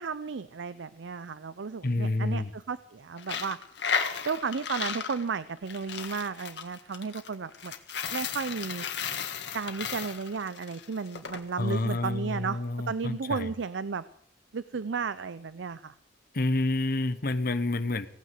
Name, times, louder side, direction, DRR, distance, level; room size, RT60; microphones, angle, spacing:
voice 1, 0.0-3.6 4.2-7.7 8.1-8.8 9.5-12.6 12.9-14.0 14.5-15.9, right 5 dB, 80° right, 15 dB, 0.5 m, -33 dB
voice 2, 1.8-2.5 11.6-13.5 16.3-18.1, left 2 dB, 55° left, 12 dB, 1.1 m, -28 dB
Coin (dropping), 3.2-11.4, left 7 dB, 70° left, 1.7 m, -34 dB
17.0 x 9.3 x 7.6 m, 0.66 s
head